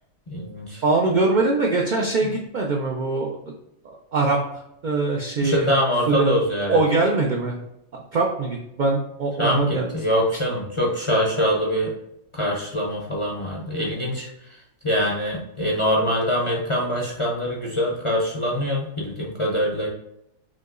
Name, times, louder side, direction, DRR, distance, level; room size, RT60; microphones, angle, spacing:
voice 1, 0.3-0.8 2.2-2.3 5.4-6.8 9.4-11.9 12.3-14.3 14.8-19.9, equal, 35° left, -3 dB, 0.5 m, -24 dB
voice 2, 0.8-3.4 3.8-4.4 4.8-5.7 6.1-6.3 6.7-7.6 7.9-9.9, right 3 dB, 65° right, 0 dB, 0.4 m, -22 dB
5.9 x 2.8 x 2.4 m, 0.82 s
omnidirectional pair, 1.4 m